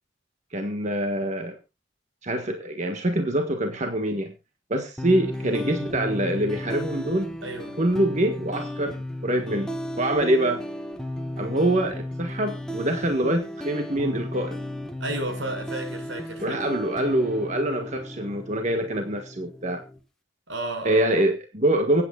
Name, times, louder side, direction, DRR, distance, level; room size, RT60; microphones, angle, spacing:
voice 1, 0.5-1.6 2.2-4.3 4.7-7.4 7.8-10.6 11.4-14.6 16.4-19.8 20.8-22.0, right 1 dB, 40° right, 1.6 m, -25 dB
sound 1, 5.0-20.0, left 1 dB, 5° left, 1.4 m, -34 dB
voice 2, 7.4-7.8 15.0-16.6 20.5-21.3, right 2 dB, 85° right, 6.0 m, -33 dB
24.5 x 9.1 x 2.4 m
head